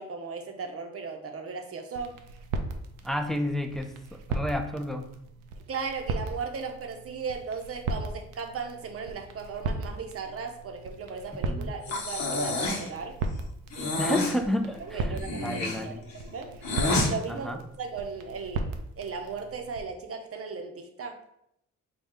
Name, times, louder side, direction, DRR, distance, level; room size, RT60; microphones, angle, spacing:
voice 1, 0.0-2.2 5.7-13.2 13.8-14.1 14.8-16.5 17.1-18.7 19.0-21.2, right 5 dB, 45° right, 4 dB, 0.7 m, -37 dB
sound 1, 1.9-19.8, right 3 dB, 85° right, 0.5 m, -37 dB
voice 2, 3.0-5.1 11.5-11.7 14.0-16.0 17.3-17.6, equal, ahead, 5 dB, 0.4 m, -31 dB
Breathing, 11.9-12.9 13.7-14.4 15.1-17.1, left 2 dB, 65° left, 1.0 m, -29 dB
4.1 x 2.3 x 3.6 m, 0.78 s
supercardioid pair, 65°, 31 cm